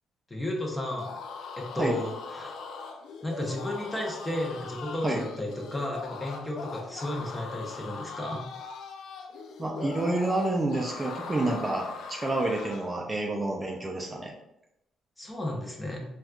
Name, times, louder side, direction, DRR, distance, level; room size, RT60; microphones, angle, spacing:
voice 1, 0.3-1.1 1.6-2.5 3.2-8.5 15.2-16.0, left 1 dB, 15° left, -1 dB, 0.8 m, -33 dB
sound 1, 0.9-13.0, left 5 dB, 75° left, 0.3 m, -40 dB
voice 2, 9.6-14.3, right 2 dB, 25° right, 0 dB, 0.5 m, -29 dB
4.2 x 2.4 x 2.3 m, 0.84 s
cardioid pair, 90°, 0 cm